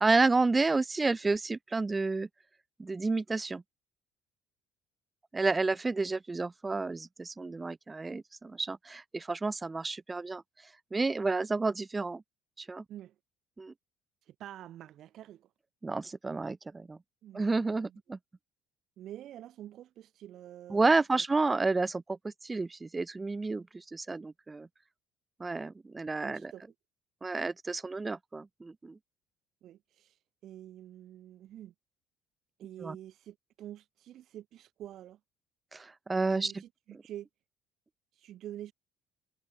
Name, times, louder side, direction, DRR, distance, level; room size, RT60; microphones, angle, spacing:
voice 1, 0.0-2.3 2.8-3.6 5.3-10.4 10.9-12.2 12.6-12.8 13.6-13.7 15.8-17.0 17.3-18.2 20.7-24.7 25.4-26.5 27.2-29.0 32.8-33.0 35.7-36.6, right 3 dB, 15° right, 1.0 m, -30 dB
voice 2, 14.2-15.5 17.2-18.0 19.0-21.2 26.2-26.6 29.6-31.7 32.6-35.2 36.3-37.3 38.1-38.7, right 12 dB, 55° right, 4.2 m, -47 dB
cardioid pair, 130°, 0 cm